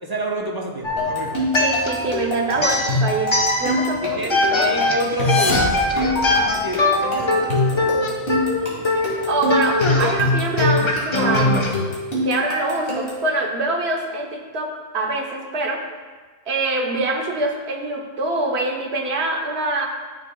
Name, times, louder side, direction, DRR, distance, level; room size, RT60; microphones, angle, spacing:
voice 1, 0.0-1.5 4.0-8.1, right 1 dB, 25° right, -1 dB, 0.8 m, -29 dB
sound 1, 0.8-2.2 2.6-4.0 4.3-11.7, left 2 dB, 30° left, 0.7 m, -22 dB
sound 2, 1.0-13.3, left 1 dB, 75° left, 2.3 m, -24 dB
voice 2, 1.6-3.3 3.6-4.7 9.3-11.7 12.2-15.8 16.5-19.9, right 2 dB, 75° right, 2 dB, 1.2 m, -24 dB
sound 3, 5.0-6.9, left 2 dB, 55° left, 1.1 m, -28 dB
12.0 x 6.4 x 2.2 m, 1.4 s
omnidirectional pair, 1.1 m